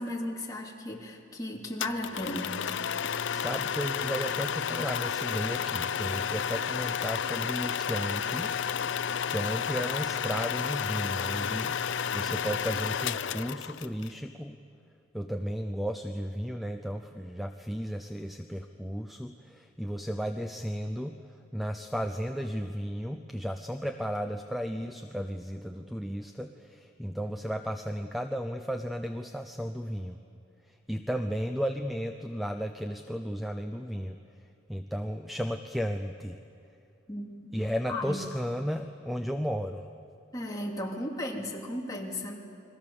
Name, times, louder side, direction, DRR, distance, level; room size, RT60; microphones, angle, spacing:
voice 1, 0.0-2.7 37.1-37.5 37.9-38.2 40.3-42.4, left 1 dB, 20° left, -1 dB, 2.6 m, -35 dB
sound 1, 1.8-14.1, left 7 dB, 65° left, 0.5 m, -31 dB
voice 2, 3.3-8.5 9.3-14.6 15.1-21.2 21.5-30.2 30.7-34.2 34.7-36.4 37.5-39.9, equal, ahead, 6 dB, 0.6 m, -34 dB
30.0 x 22.5 x 7.0 m, 2.6 s
head